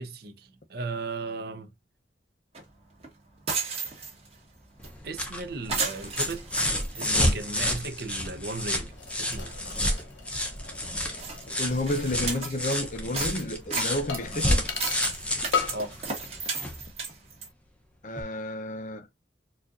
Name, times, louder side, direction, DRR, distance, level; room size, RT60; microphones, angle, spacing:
voice 1, 0.0-1.7 5.0-6.6 6.9-8.9 9.2-9.5 15.7-16.0, right 3 dB, 60° right, 0.8 m, -36 dB
sound 1, 2.5-2.6 3.0-3.1 3.4-4.4 4.8-4.9 5.2-5.4 5.7-7.9 8.2-8.3 8.9-9.0 9.3-9.5 10.0-10.1 10.6-10.7 11.2-12.8 13.1-17.5, right 4 dB, 35° right, 1.4 m, -34 dB
sound 2, 4.8-16.8 18.2-18.3, left 1 dB, 5° left, 0.7 m, -30 dB
sound 3, 8.9-12.3 12.6-12.7 14.1-15.2 15.5-16.0 16.2-16.8 17.1-17.2, left 6 dB, 90° left, 0.8 m, -36 dB
voice 2, 11.5-14.6 18.0-19.1, left 1 dB, 45° left, 0.6 m, -31 dB
4.3 x 2.5 x 2.5 m
head